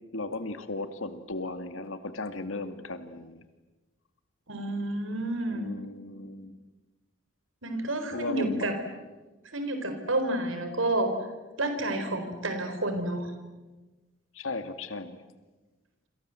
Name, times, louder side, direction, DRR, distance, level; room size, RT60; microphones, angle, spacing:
voice 1, 0.1-3.4 5.5-6.6 8.1-8.8 14.3-15.2, left 2 dB, 90° left, 9 dB, 2.4 m, -36 dB
voice 2, 4.5-5.7 7.6-8.8 9.4-11.1 11.6-13.3, right 1 dB, 80° right, 7 dB, 4.4 m, -30 dB
28.5 x 26.5 x 7.8 m, 1.2 s
head